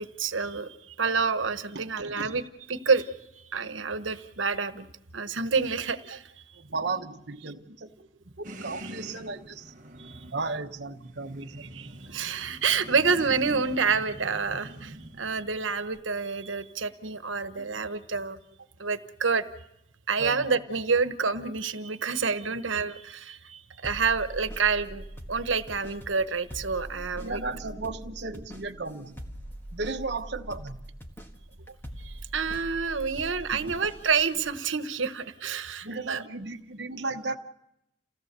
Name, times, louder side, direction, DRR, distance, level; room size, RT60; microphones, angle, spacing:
voice 1, 0.0-2.4 2.7-4.9 5.1-6.3 10.0-10.2 11.7-18.4 18.8-19.5 20.1-27.4 32.0-36.2, right 5 dB, 90° right, 10 dB, 1.2 m, -28 dB
voice 2, 1.7-2.4 6.5-9.7 10.3-11.7 17.5-17.7 20.2-20.5 26.9-29.2 29.7-30.8 33.5-33.8 35.8-37.4, right 3 dB, 60° right, 4 dB, 1.1 m, -35 dB
sound 1, 8.4-16.0, right 1 dB, 40° right, 1.3 m, -45 dB
sound 2, 23.8-34.5, equal, 10° left, 1.4 m, -43 dB
28.5 x 17.0 x 6.8 m, 0.87 s
head